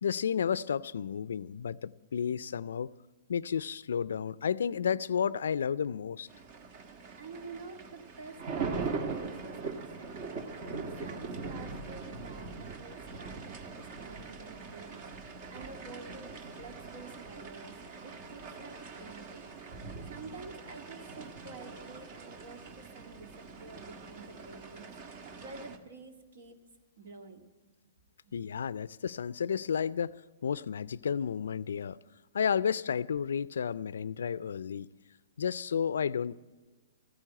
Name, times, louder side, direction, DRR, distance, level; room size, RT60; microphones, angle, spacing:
voice 1, 0.0-2.9 3.3-6.3 28.3-30.2 30.4-32.0 32.3-34.9 35.4-36.3, left 7 dB, 75° left, 19 dB, 0.4 m, -32 dB
sound 1, 6.3-25.8, right 4 dB, 45° right, 1.4 m, -42 dB
voice 2, 7.1-10.1 10.6-15.0 15.5-19.5 20.1-24.9 25.4-26.6 27.0-27.5 28.2-28.4, right 3 dB, 65° right, 7 dB, 1.9 m, -49 dB
14.5 x 9.3 x 8.7 m, 1.3 s
hypercardioid pair, 125°, 0 cm